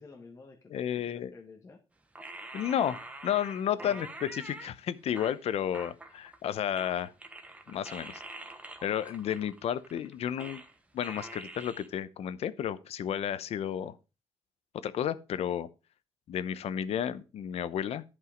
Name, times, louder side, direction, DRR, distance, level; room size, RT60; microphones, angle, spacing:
voice 1, 0.0-1.8 3.8-4.1, left 4 dB, 30° left, 1.3 m, -51 dB
voice 2, 0.7-1.3 2.5-7.1 7.7-8.2 8.8-10.6 10.9-14.0 14.8-15.7 16.3-18.0, left 9 dB, 75° left, 0.8 m, -32 dB
sound 1, 2.1-4.7 5.1-6.5 6.8-10.8 11.0-11.9, right 2 dB, 10° right, 1.1 m, -45 dB
11.0 x 5.5 x 5.1 m
wide cardioid pair, 160°, 11 cm